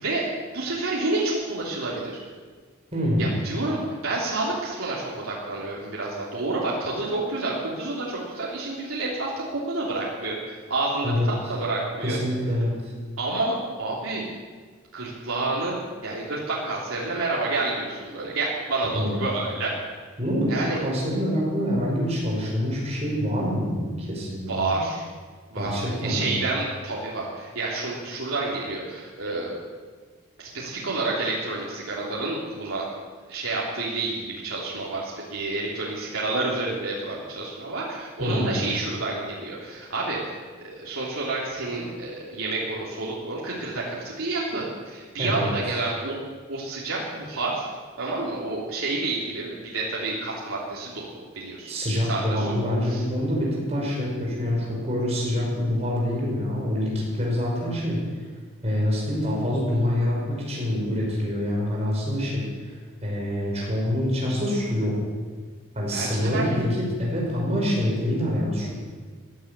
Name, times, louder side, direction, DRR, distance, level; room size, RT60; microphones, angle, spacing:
voice 1, 0.0-2.2 3.2-3.8 4.0-12.2 13.2-14.3 14.9-19.7 20.5-20.8 24.5-25.0 25.5-29.6 30.4-32.9 33.3-46.2 46.5-47.7 48.0-51.1 51.3-51.8 52.1-52.5 52.9-53.0 65.9-66.6, right 2 dB, 75° right, -5 dB, 3.2 m, -29 dB
voice 2, 2.9-3.4 11.0-11.3 12.0-12.9 18.9-19.3 20.2-20.5 20.8-24.7 25.5-26.4 38.2-38.6 45.2-45.5 51.7-58.0 58.6-62.7 63.0-65.0 65.7-68.7, left 1 dB, 30° right, -3 dB, 5.3 m, -26 dB
16.0 x 10.5 x 8.3 m, 1.5 s
head